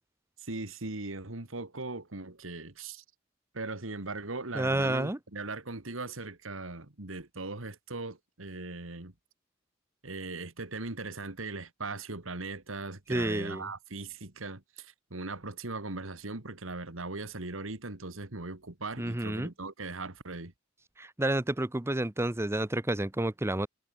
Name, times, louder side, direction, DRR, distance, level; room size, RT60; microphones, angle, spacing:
voice 1, 0.4-3.0 3.5-9.1 10.0-20.5, right 3 dB, 85° right, 2.5 m, -39 dB
voice 2, 4.5-5.2 13.1-13.7 19.0-19.5 21.0-23.7, right 1 dB, 15° right, 0.8 m, -30 dB
head